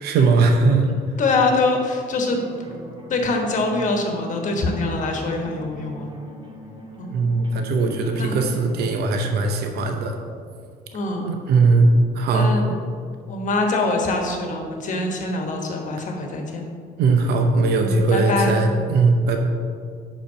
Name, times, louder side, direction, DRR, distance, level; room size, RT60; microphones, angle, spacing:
voice 1, 0.0-1.0 7.1-10.2 11.2-12.8 17.0-19.4, right 3 dB, 70° right, 4 dB, 0.8 m, -19 dB
voice 2, 1.2-2.4 3.1-6.1 7.0-7.1 8.2-8.4 10.9-11.3 12.3-12.6 13.3-16.7 17.8-18.5, left 3 dB, 50° left, 2 dB, 1.2 m, -24 dB
sound 1, 2.3-9.0, right 1 dB, 30° right, 1.2 m, -39 dB
5.2 x 5.1 x 5.7 m, 2.1 s
cardioid pair, 110°, 17 cm